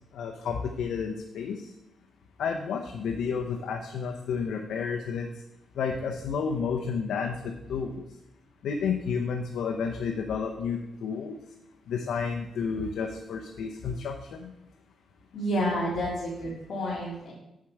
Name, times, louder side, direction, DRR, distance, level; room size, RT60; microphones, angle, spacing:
voice 1, 0.1-1.7 2.4-5.3 5.8-8.1 8.6-11.4 11.9-14.5, left 6 dB, 80° left, 3 dB, 0.8 m, -31 dB
voice 2, 15.3-17.3, equal, 50° left, -7 dB, 2.3 m, -29 dB
7.6 x 7.3 x 4.7 m, 0.88 s
cardioid pair, 145°, 0 cm